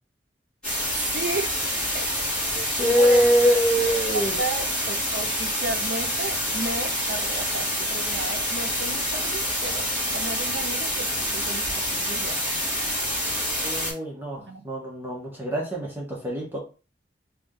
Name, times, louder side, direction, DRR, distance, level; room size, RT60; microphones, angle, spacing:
sound 1, 0.6-13.9, equal, 5° left, 2.4 m, -27 dB
voice 1, 1.1-1.5 1.9-2.1 2.5-3.3 4.4-9.9 10.1-12.4 14.5-14.6, right 3 dB, 75° right, 0.5 m, -33 dB
voice 2, 2.7-4.4 13.6-16.6, equal, 10° right, 1.2 m, -23 dB
3.5 x 3.4 x 3.8 m
head